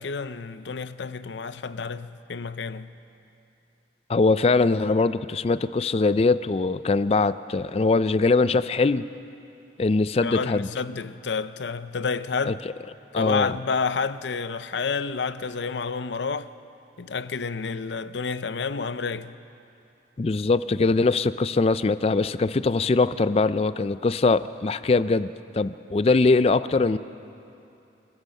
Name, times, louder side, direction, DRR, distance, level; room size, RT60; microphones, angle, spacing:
voice 1, 0.0-2.9 10.2-12.6 13.1-16.5 17.0-19.4, left 5 dB, 85° left, 0.6 m, -29 dB
voice 2, 4.1-9.0 9.8-10.7 12.5-12.6 13.1-13.5 20.2-25.3 25.5-27.0, left 3 dB, 35° left, 0.4 m, -22 dB
27.5 x 15.0 x 6.5 m
head